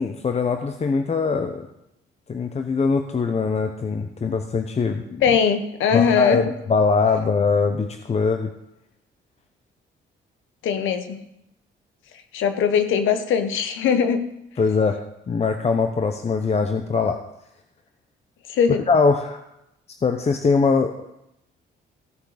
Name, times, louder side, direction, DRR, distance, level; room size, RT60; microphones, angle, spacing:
voice 1, 0.0-1.7 2.3-5.2 5.9-8.5 14.6-15.0 15.3-17.2 18.9-19.4 20.0-21.1, left 4 dB, 35° left, 6 dB, 0.8 m, -22 dB
voice 2, 5.2-6.4 10.6-11.2 12.3-14.2 18.5-18.8, left 7 dB, 80° left, 9 dB, 1.2 m, -20 dB
15.5 x 6.5 x 5.0 m, 0.83 s
cardioid pair, 90°, 20 cm